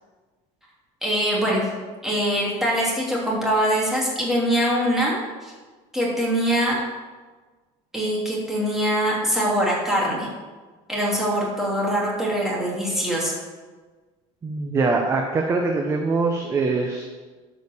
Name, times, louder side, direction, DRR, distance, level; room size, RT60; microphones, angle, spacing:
voice 1, 1.0-1.7 2.0-5.5 5.9-6.8 7.9-10.3 10.9-13.4, equal, 5° right, -5 dB, 2.9 m, -23 dB
voice 2, 14.4-17.1, right 3 dB, 20° right, 2 dB, 0.9 m, -23 dB
13.0 x 5.2 x 6.8 m, 1.3 s
cardioid pair, 160°, 14 cm